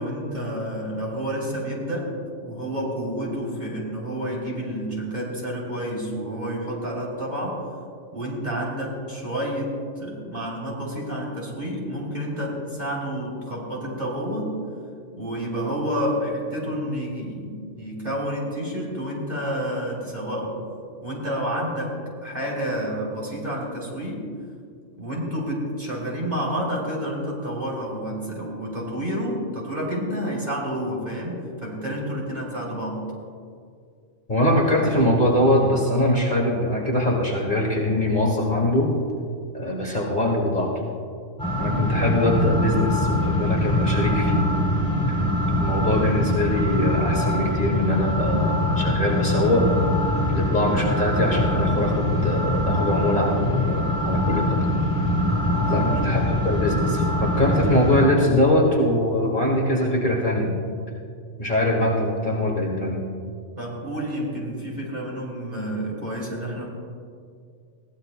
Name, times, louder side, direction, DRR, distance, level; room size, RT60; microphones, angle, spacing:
voice 1, 0.0-2.1 2.4-7.6 8.1-9.7 10.0-14.5 15.2-20.6 21.0-22.0 22.2-24.3 25.0-33.0 55.7-56.1 63.6-66.7, equal, 30° right, -4 dB, 3.6 m, -29 dB
voice 2, 34.3-38.9 39.5-40.7 41.6-44.5 45.6-49.7 50.3-54.6 55.7-60.6 61.4-63.0, left 1 dB, 35° left, -2 dB, 1.9 m, -22 dB
sound 1, 41.4-58.1, left 1 dB, 5° left, 3.2 m, -23 dB
21.5 x 16.5 x 2.2 m, 2.2 s
omnidirectional pair, 1.4 m